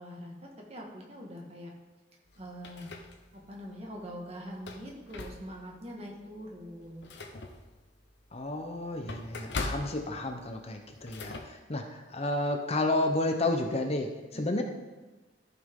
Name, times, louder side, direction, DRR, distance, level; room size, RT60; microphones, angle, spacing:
voice 1, 0.0-1.7 2.4-2.9 3.3-7.1 14.3-14.6, equal, 35° right, -1 dB, 1.7 m, -43 dB
sound 1, 2.3-3.6 4.0-4.1 4.5-5.8 6.2-6.4 6.7-11.4, left 2 dB, 75° left, 1.0 m, -41 dB
voice 2, 8.3-14.6, left 2 dB, 35° left, 4 dB, 0.8 m, -31 dB
13.5 x 5.9 x 3.7 m, 1.2 s
head